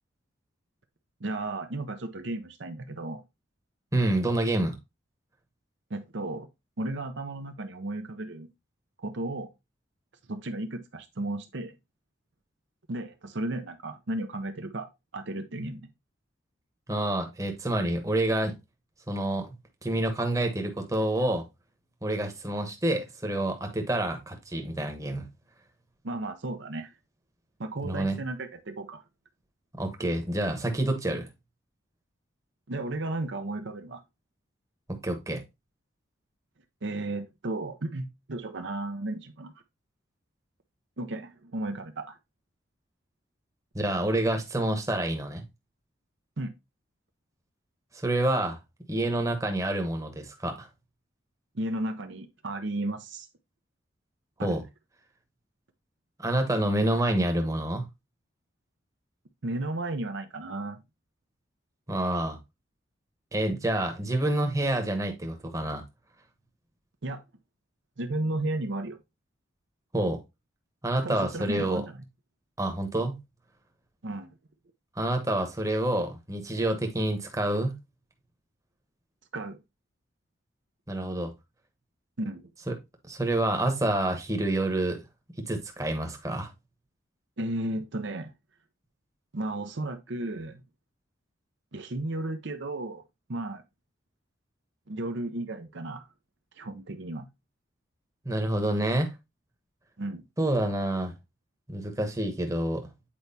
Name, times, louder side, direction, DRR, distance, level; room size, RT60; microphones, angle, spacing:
voice 1, 1.2-3.2 5.9-6.5 6.8-8.5 9.0-9.5 10.3-11.8 12.9-15.9 26.0-26.9 27.6-29.0 32.7-34.0 36.8-39.5 41.0-42.2 46.4-46.5 51.5-53.3 54.4-54.6 59.4-60.8 67.0-67.2 68.0-69.0 71.0-72.0 74.0-74.3 79.3-79.6 82.2-82.4 87.4-88.3 89.3-90.6 91.7-93.0 93.3-93.6 94.9-96.1 96.6-97.3 100.0-100.2, right 2 dB, 65° right, 0.7 m, -34 dB
voice 2, 3.9-4.8 16.9-18.6 19.1-19.5 19.8-21.4 22.0-25.3 27.8-28.2 29.7-31.3 34.9-35.4 43.7-45.4 47.9-48.6 48.9-50.7 54.4-54.6 56.2-57.9 61.9-62.4 63.3-65.8 69.9-70.2 70.8-71.8 72.6-73.2 75.0-77.8 80.9-81.3 82.7-82.8 83.1-85.0 85.5-86.5 98.2-99.1 100.4-101.1 101.7-102.9, right 1 dB, 15° right, 1.1 m, -28 dB
8.6 x 4.6 x 2.7 m
head